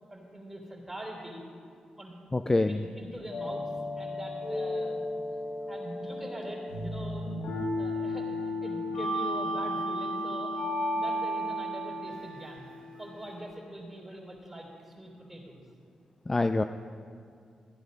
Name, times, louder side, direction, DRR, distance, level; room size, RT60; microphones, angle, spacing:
voice 1, 0.1-1.4 2.0-2.1 2.7-3.6 4.0-5.2 5.7-10.6 10.9-15.6, right 1 dB, 10° right, -1 dB, 3.2 m, -43 dB
voice 2, 2.3-2.8 16.3-16.6, left 2 dB, 20° left, 9 dB, 0.4 m, -25 dB
sound 1, 3.3-13.4, left 1 dB, 75° left, 2.5 m, -34 dB
14.5 x 9.8 x 5.3 m, 2.4 s
cardioid pair, 85°, 2 cm